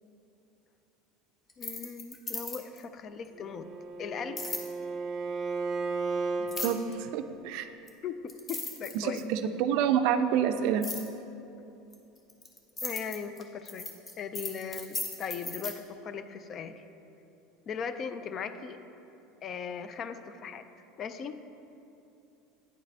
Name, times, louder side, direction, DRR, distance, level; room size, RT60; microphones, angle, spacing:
sound 1, 1.5-2.8 4.4-4.7 6.5-6.9 7.9-8.0 8.3-9.4 10.8-11.1 11.9-15.7, left 3 dB, 25° left, 0.8 m, -37 dB
voice 1, 1.6-3.7 4.0-4.6 8.0-9.3 11.6-11.7 12.8-13.9 14.2-16.8 17.7-18.8 19.4-20.6 21.0-21.4, left 6 dB, 40° left, 11 dB, 0.3 m, -38 dB
Bowed string instrument, 3.4-6.5, right 4 dB, 30° right, 0.6 m, -34 dB
voice 2, 6.4-7.7 8.9-10.9, right 9 dB, 65° right, 9 dB, 0.4 m, -28 dB
9.4 x 4.7 x 3.4 m, 2.9 s
supercardioid pair, 120°, 0 cm